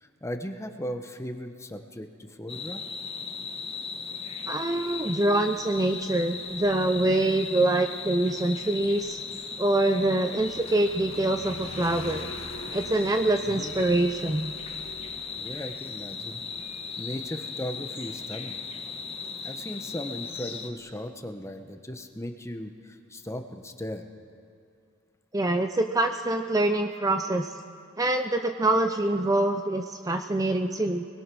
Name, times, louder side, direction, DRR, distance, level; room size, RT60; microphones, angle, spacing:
voice 1, 0.0-2.8 13.5-13.7 15.4-16.4 17.0-18.6 19.4-24.0, equal, 15° left, 6 dB, 1.2 m, -37 dB
sound 1, 2.5-20.7, left 5 dB, 30° left, 1.5 m, -37 dB
voice 2, 4.5-9.2 9.6-12.3 12.7-14.5 25.3-27.6 28.0-31.1, right 2 dB, 15° right, 6 dB, 0.6 m, -25 dB
Motorcycle, 4.9-19.2, left 2 dB, 80° left, 2.1 m, -47 dB
29.0 x 21.0 x 6.2 m, 2.4 s
head